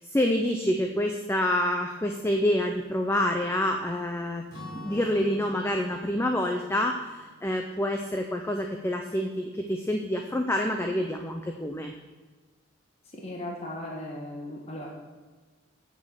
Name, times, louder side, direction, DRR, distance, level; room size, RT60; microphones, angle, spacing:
voice 1, 0.0-4.4 4.7-11.9, left 1 dB, 10° left, 3 dB, 0.5 m, -27 dB
Acoustic guitar / Strum, 4.5-8.5, equal, 90° left, 3.6 m, -47 dB
voice 2, 13.1-14.9, left 1 dB, 30° left, -2 dB, 1.3 m, -37 dB
8.6 x 7.2 x 6.5 m, 1.3 s
head